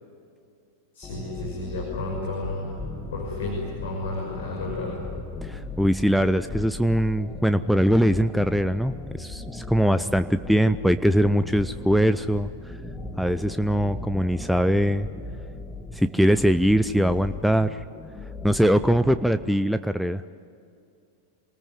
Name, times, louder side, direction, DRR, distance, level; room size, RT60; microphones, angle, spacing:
voice 1, 0.9-2.8 3.1-5.0, left 2 dB, 60° left, -2 dB, 6.2 m, -32 dB
sound 1, 1.0-19.5, left 2 dB, 15° left, 1.9 m, -37 dB
voice 2, 5.4-12.8 13.2-15.1 15.9-17.8 18.4-20.2, equal, ahead, 11 dB, 0.6 m, -22 dB
27.0 x 19.5 x 9.4 m, 2.6 s
figure-of-eight pair, 90°, 0 cm